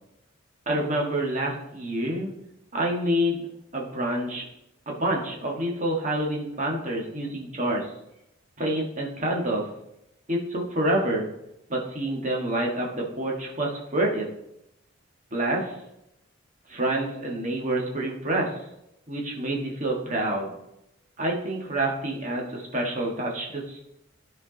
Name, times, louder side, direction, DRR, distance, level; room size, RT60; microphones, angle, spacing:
voice 1, 0.6-2.3 2.7-3.4 3.7-4.4 4.9-7.9 8.6-9.6 10.3-11.3 11.7-14.3 15.3-15.8 16.7-18.6 19.1-20.5 21.2-23.9, right 1 dB, 35° right, -1 dB, 1.5 m, -27 dB
12.0 x 4.6 x 3.9 m, 0.84 s
head